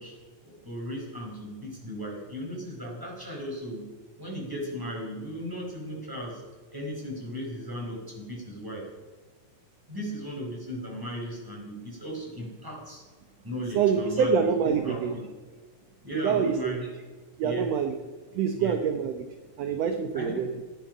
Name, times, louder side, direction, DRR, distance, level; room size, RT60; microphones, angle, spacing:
voice 1, 0.0-3.9 4.2-6.4 6.7-8.9 9.9-13.0 13.4-15.3 16.0-16.9 17.4-17.7 18.6-18.8 20.1-20.4, equal, 5° right, -1 dB, 4.5 m, -36 dB
voice 2, 13.7-15.1 16.1-16.7 17.4-18.0 18.3-19.3 19.6-20.5, right 6 dB, 65° right, 7 dB, 1.9 m, -26 dB
18.0 x 12.0 x 5.5 m, 1.4 s
omnidirectional pair, 3.5 m